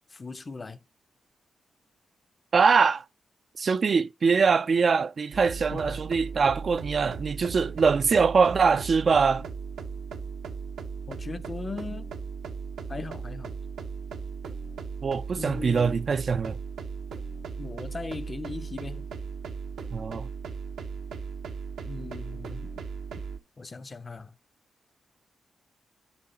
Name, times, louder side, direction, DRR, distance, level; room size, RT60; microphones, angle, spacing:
voice 1, 0.1-0.8 5.7-5.9 11.1-12.1 12.9-13.5 15.3-16.0 17.6-19.1 21.8-22.7 23.6-24.3, left 3 dB, 40° left, 0.6 m, -38 dB
voice 2, 2.5-3.0 3.6-9.5 15.0-16.6 19.9-20.3, right 5 dB, 55° right, 0.4 m, -23 dB
sound 1, 5.3-23.4, right 5 dB, 80° right, 0.7 m, -37 dB
10.5 x 3.7 x 4.2 m
supercardioid pair, 40°, 0 cm